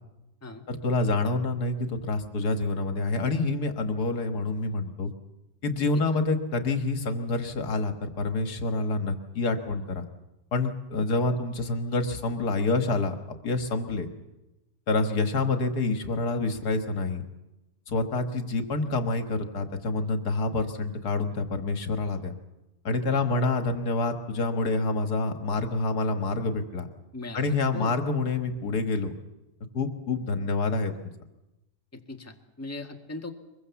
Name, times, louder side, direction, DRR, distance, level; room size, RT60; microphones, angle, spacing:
voice 1, 0.7-5.1 5.6-10.1 10.5-13.2 13.4-14.1 14.9-17.2 17.9-22.3 22.8-26.9 27.3-29.1 29.7-31.1, left 3 dB, 70° left, 7 dB, 2.1 m, -27 dB
voice 2, 27.1-28.0 31.9-33.3, left 2 dB, 10° left, 3 dB, 1.6 m, -39 dB
23.5 x 22.0 x 7.1 m, 0.98 s
omnidirectional pair, 1.8 m